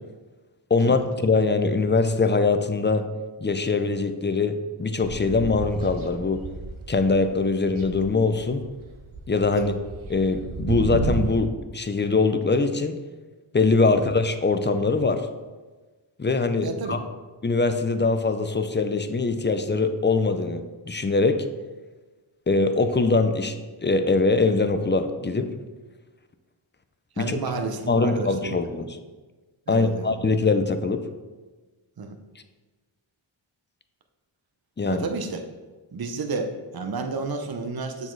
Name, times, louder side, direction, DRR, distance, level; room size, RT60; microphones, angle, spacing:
voice 1, 0.7-3.1 3.4-6.4 6.9-8.6 9.3-9.8 10.1-13.0 13.5-15.3 16.2-17.0 17.4-21.5 22.5-25.5 27.2-27.4 27.9-29.0 29.7-31.0 34.8-35.1, left 3 dB, 25° left, 8 dB, 0.5 m, -22 dB
sound 1, 5.0-7.3 7.6-11.4, right 3 dB, 85° right, 0.8 m, -32 dB
voice 2, 16.6-17.0 27.2-28.9 29.7-30.1 32.0-32.2 34.9-35.5 35.9-38.1, right 4 dB, 50° right, 6 dB, 0.8 m, -31 dB
7.0 x 4.1 x 4.6 m, 1.3 s
cardioid pair, 45°, 47 cm